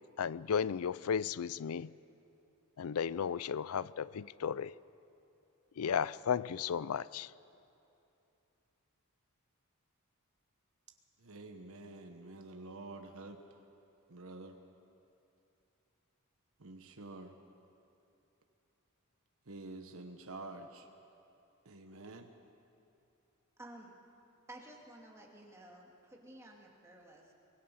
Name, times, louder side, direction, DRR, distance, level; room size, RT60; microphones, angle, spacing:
voice 1, 0.2-1.9 2.8-4.7 5.8-7.3, left 7 dB, 75° left, 20 dB, 0.4 m, -34 dB
voice 2, 11.2-13.4 14.1-14.6 16.6-17.3 19.5-20.9 21.6-22.3, right 2 dB, 65° right, 5 dB, 1.1 m, -48 dB
voice 3, 23.6-23.9 24.5-27.3, right 1 dB, 15° right, -1 dB, 2.4 m, -53 dB
24.0 x 19.5 x 5.7 m, 2.8 s
head